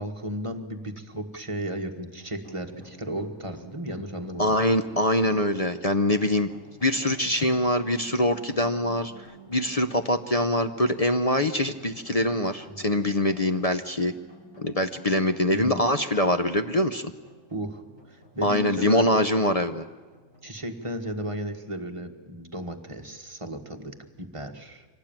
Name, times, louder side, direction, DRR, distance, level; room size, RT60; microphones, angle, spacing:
voice 1, 0.0-4.6 12.7-12.8 15.5-15.9 17.5-19.1 20.4-24.9, equal, 20° right, 4 dB, 1.6 m, -34 dB
sound 1, 2.2-21.4, equal, 15° left, 4.5 m, -51 dB
voice 2, 4.4-6.5 6.8-14.1 14.6-17.1 18.4-19.8, left 1 dB, 40° left, 8 dB, 0.6 m, -24 dB
25.5 x 18.0 x 8.9 m, 1.3 s
omnidirectional pair, 1.6 m